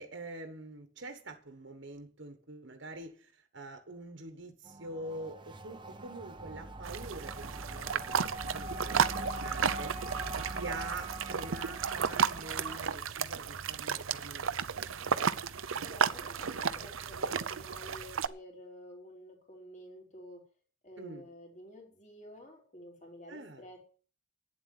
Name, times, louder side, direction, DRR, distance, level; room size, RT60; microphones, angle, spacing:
voice 1, 0.0-15.1 21.0-21.3 23.3-23.6, right 2 dB, 60° right, 7 dB, 1.3 m, -45 dB
sound 1, 4.6-13.0, right 1 dB, 20° right, 0.9 m, -43 dB
sound 2, 6.8-18.3, right 6 dB, 75° right, 0.7 m, -33 dB
voice 2, 10.0-10.4 15.8-20.5 20.8-24.0, equal, 35° left, 0 dB, 3.2 m, -51 dB
9.6 x 7.7 x 9.2 m, 0.42 s
head